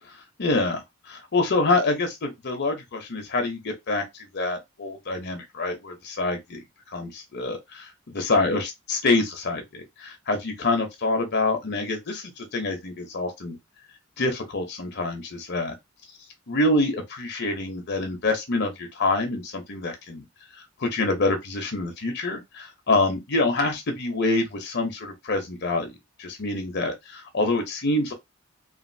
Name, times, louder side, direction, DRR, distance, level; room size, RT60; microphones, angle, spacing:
voice 1, 0.4-4.0 4.3-6.6 6.9-13.6 14.2-15.7 16.5-20.2 20.8-25.9 26.2-28.1, left 2 dB, 55° left, 0.8 m, -26 dB
3.1 x 2.5 x 2.6 m
head